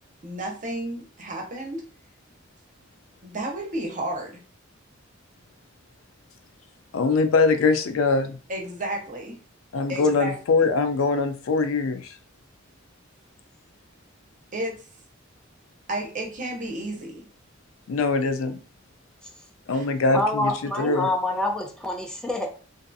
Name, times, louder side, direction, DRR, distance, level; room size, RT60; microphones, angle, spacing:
voice 1, 0.2-1.8 3.2-4.4 8.5-9.4 9.9-10.3 14.5-14.8 15.9-17.2 19.7-19.8, right 1 dB, 40° right, 0.7 m, -32 dB
voice 2, 6.9-8.4 9.7-12.2 17.9-18.6 19.7-20.5 20.8-21.1, left 4 dB, 85° left, 0.4 m, -22 dB
voice 3, 20.1-22.5, left 1 dB, 5° left, 0.5 m, -26 dB
2.5 x 2.3 x 2.6 m
head